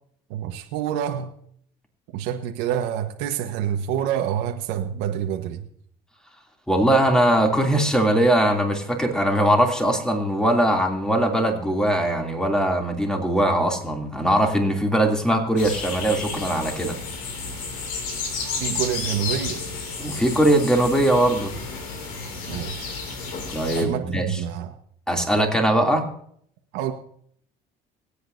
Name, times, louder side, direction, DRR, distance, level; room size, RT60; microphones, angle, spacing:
voice 1, 0.3-1.3 2.1-5.7 18.6-19.6 22.5-22.9 23.7-24.7 26.7-26.9, right 9 dB, 85° right, 3 dB, 1.4 m, -27 dB
voice 2, 6.7-17.0 20.0-21.5 23.5-24.4 25.1-26.1, right 1 dB, 5° left, 2 dB, 2.9 m, -21 dB
sound 1, 15.6-23.8, left 4 dB, 85° left, 2.8 m, -32 dB
24.5 x 8.5 x 2.7 m, 0.64 s
supercardioid pair, 90°, 18 cm